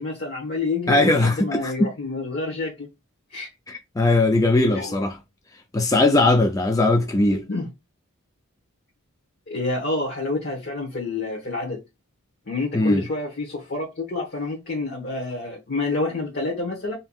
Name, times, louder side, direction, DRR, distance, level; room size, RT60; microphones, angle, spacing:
voice 1, 0.0-2.9 3.3-3.5 4.7-4.9 7.5-7.7 9.5-11.8 12.5-17.0, left 3 dB, 50° left, 1.1 m, -28 dB
voice 2, 0.9-1.9 3.7-5.2 5.7-7.4 12.7-13.0, left 2 dB, 15° left, 0.4 m, -19 dB
5.4 x 2.7 x 2.3 m
head